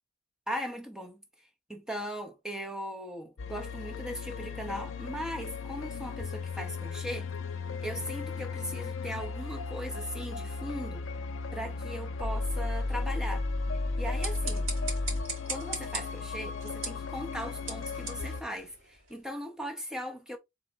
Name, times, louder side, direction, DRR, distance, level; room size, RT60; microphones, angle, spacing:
voice 1, 0.5-1.2 1.7-7.3 7.8-11.0 11.5-13.5 14.0-14.7 15.5-20.4, equal, 5° right, 0.8 m, -38 dB
sound 1, 3.4-18.4, left 3 dB, 60° left, 0.5 m, -35 dB
sound 2, 13.9-19.2, right 3 dB, 65° right, 2.4 m, -41 dB
3.6 x 3.6 x 3.8 m
head